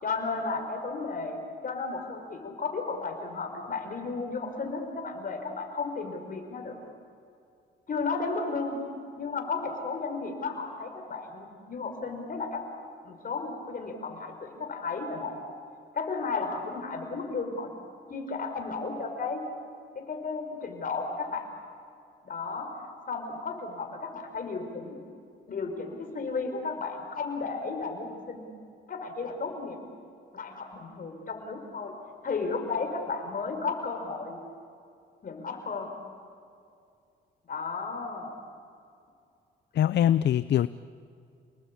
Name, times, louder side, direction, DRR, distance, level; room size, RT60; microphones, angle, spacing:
voice 1, 0.0-6.8 7.9-8.8 9.2-12.6 13.0-15.4 15.9-17.7 18.1-19.4 19.9-21.5 22.2-22.7 23.1-25.0 25.5-28.5 28.9-29.8 30.3-32.0 32.2-34.4 35.2-35.9 37.5-38.3, left 4 dB, 45° left, 4 dB, 5.5 m, -34 dB
voice 2, 39.7-40.7, left 11 dB, 60° left, 15 dB, 0.6 m, -23 dB
29.5 x 20.0 x 8.7 m, 2.5 s
cardioid pair, 90°, 20 cm